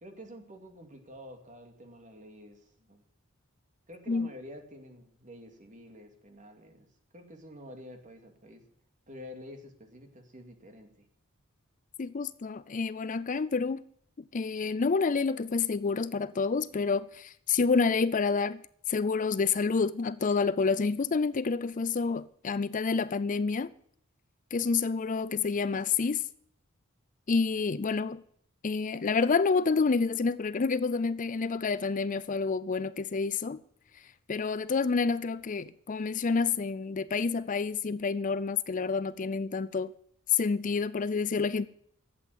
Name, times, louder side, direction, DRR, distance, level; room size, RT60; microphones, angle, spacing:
voice 1, 0.0-3.0 3.9-8.6 9.1-11.1, left 1 dB, 35° right, 2.3 m, -49 dB
voice 2, 12.0-13.8 14.3-18.6 18.9-23.7 24.5-26.2 27.3-28.2 28.6-33.6 34.3-39.9 40.3-41.7, left 4 dB, 40° left, 0.5 m, -28 dB
12.0 x 8.1 x 9.4 m
head